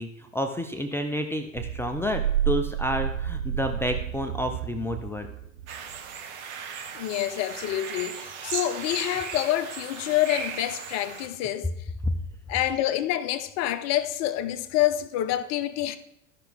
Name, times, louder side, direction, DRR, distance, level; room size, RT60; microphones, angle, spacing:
voice 1, 0.0-5.3, left 1 dB, 5° left, 0.5 m, -30 dB
sound 1, 1.5-6.0, right 10 dB, 80° right, 0.5 m, -30 dB
sound 2, 5.7-11.3, right 6 dB, 60° right, 1.4 m, -37 dB
voice 2, 6.9-11.7 12.5-16.0, left 13 dB, 40° left, 0.8 m, -27 dB
13.5 x 5.8 x 3.5 m
hypercardioid pair, 90°, 40 cm